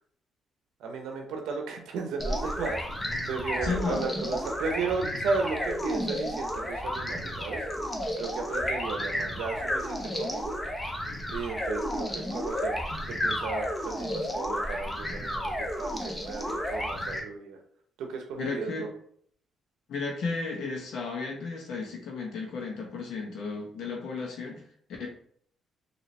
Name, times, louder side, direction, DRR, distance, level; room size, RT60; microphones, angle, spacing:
voice 1, 0.8-7.6 8.2-10.5 10.9-12.8 13.1-17.6 18.0-18.9, right 4 dB, 85° right, 3 dB, 0.7 m, -35 dB
sound 1, 2.2-17.2, equal, 15° left, 0.9 m, -32 dB
voice 2, 3.6-4.1 18.3-18.9 19.9-24.6 25.0-25.1, left 4 dB, 75° left, -1 dB, 1.0 m, -33 dB
4.2 x 2.8 x 3.1 m, 0.62 s
cardioid pair, 90°, 0 cm